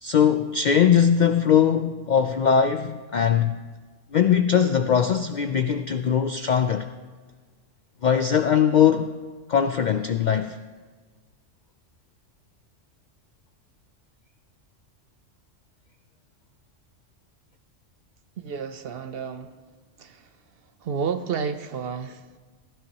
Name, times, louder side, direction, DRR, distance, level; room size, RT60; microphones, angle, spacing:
voice 1, 0.0-3.6 4.1-6.9 8.0-9.1 9.5-10.6, left 8 dB, 65° left, 9 dB, 0.4 m, -20 dB
voice 2, 18.4-19.6 20.0-20.4 20.8-22.4, right 6 dB, 60° right, 9 dB, 0.7 m, -31 dB
17.0 x 15.5 x 2.9 m, 1.4 s
omnidirectional pair, 1.3 m